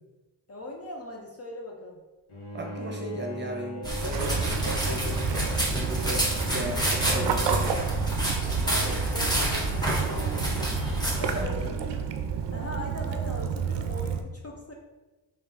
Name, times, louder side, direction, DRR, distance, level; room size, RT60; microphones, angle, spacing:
voice 1, 0.5-2.0 8.6-10.8 11.2-11.7 12.5-14.7, left 1 dB, 30° left, 0 dB, 0.7 m, -40 dB
Bowed string instrument, 2.3-7.5, equal, 75° left, 1.2 m, -41 dB
voice 2, 2.5-7.8 11.4-11.8, right 1 dB, 20° right, 1 dB, 0.9 m, -36 dB
sound 1, 3.8-11.4, equal, 10° left, 1.5 m, -29 dB
Waves surf / Splash splatter / Trickle dribble, 4.1-14.2, right 7 dB, 60° right, 0.5 m, -30 dB
3.3 x 2.6 x 4.0 m, 1.2 s
supercardioid pair, 40°, 49 cm